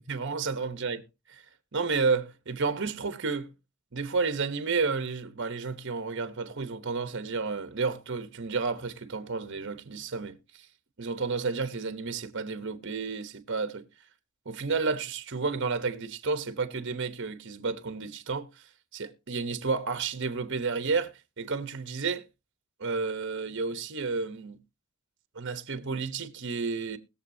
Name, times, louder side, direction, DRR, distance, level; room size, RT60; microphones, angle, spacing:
voice 1, 0.1-1.0 1.3-1.4 1.7-3.5 3.9-10.4 11.0-13.8 14.5-18.5 18.9-22.2 22.8-24.6 25.3-27.0, right 4 dB, 60° right, 1.0 m, -31 dB
20.5 x 7.0 x 2.7 m
head